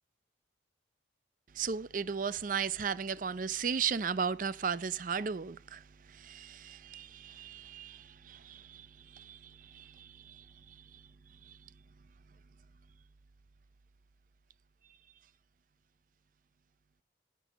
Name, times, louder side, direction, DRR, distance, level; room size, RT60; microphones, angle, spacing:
voice 1, 1.5-5.8 6.1-8.9 9.1-10.8 11.5-11.6, right 6 dB, 45° right, 0.5 m, -36 dB
13.0 x 6.1 x 4.1 m
head